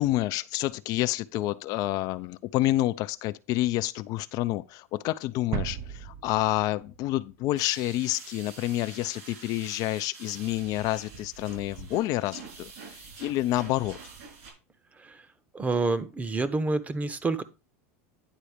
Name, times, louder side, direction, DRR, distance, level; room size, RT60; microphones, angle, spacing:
voice 1, 0.0-12.9 13.2-14.0, left 16 dB, 50° left, 0.5 m, -28 dB
sound 1, 5.5-7.4 7.6-7.7, right 10 dB, 45° right, 0.6 m, -36 dB
sound 2, 7.6-14.5, right 5 dB, 65° right, 4.7 m, -46 dB
voice 2, 15.5-17.4, right 3 dB, 20° right, 0.9 m, -28 dB
9.9 x 4.2 x 5.0 m
hypercardioid pair, 100°, 8 cm